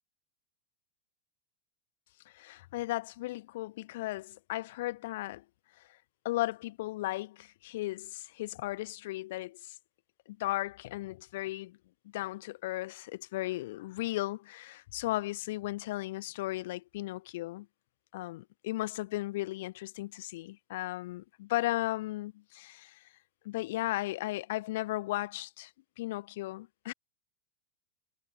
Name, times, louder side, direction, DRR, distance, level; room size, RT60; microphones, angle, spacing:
voice 1, 2.3-5.4 6.2-9.8 10.3-11.8 12.1-17.7 18.1-23.0 23.4-25.7 26.0-26.9, left 17 dB, 65° left, 5.6 m, -36 dB
supercardioid pair, 145°, 0 cm